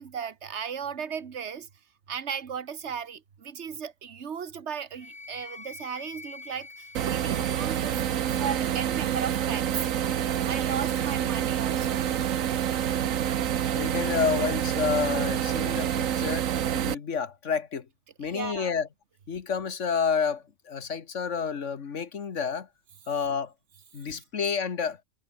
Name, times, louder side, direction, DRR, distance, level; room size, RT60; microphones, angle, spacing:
voice 1, 0.0-1.7 2.1-8.0 8.3-9.9 10.4-12.0 18.2-18.7, right 7 dB, 60° right, 1.6 m, -36 dB
Wind instrument woodwind instrument, 4.9-9.1, left 3 dB, 35° left, 2.3 m, -46 dB
sound 1, 6.9-16.9, right 10 dB, 85° right, 1.3 m, -27 dB
voice 2, 13.7-16.5 16.7-17.9 18.2-18.9 19.3-22.7 23.1-23.5 23.9-25.0, left 6 dB, 65° left, 1.7 m, -29 dB
omnidirectional pair, 1.4 m